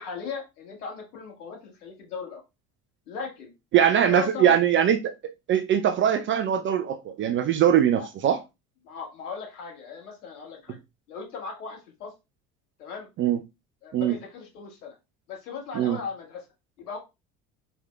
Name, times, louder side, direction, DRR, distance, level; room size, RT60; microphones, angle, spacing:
voice 1, 0.0-2.4 3.1-3.5 4.0-4.6 8.8-10.8 11.1-12.1 12.8-13.1 13.8-15.0 15.3-16.4 16.8-17.0, left 5 dB, 70° left, 1.7 m, -38 dB
voice 2, 3.7-5.0 5.5-8.4 13.2-13.4 13.9-14.2 15.7-16.0, right 9 dB, 25° right, 0.4 m, -21 dB
4.8 x 3.5 x 2.2 m
figure-of-eight pair, 65°, 46 cm